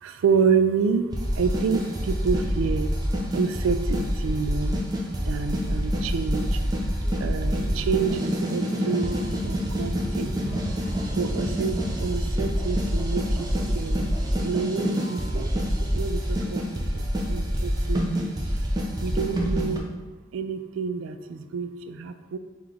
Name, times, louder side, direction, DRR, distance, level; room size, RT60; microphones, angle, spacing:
voice 1, 0.0-1.1 1.4-2.9 3.3-4.8 5.3-6.6 7.2-9.2 9.4-10.6 11.1-14.1 14.4-18.3 19.0-19.9 20.3-22.4, right 5 dB, 85° right, 10 dB, 0.3 m, -28 dB
sound 1, 1.1-19.8, equal, 20° right, 0.5 m, -26 dB
sound 2, 7.0-15.4, right 2 dB, 10° left, 0.8 m, -44 dB
5.7 x 2.4 x 3.2 m, 1.3 s
head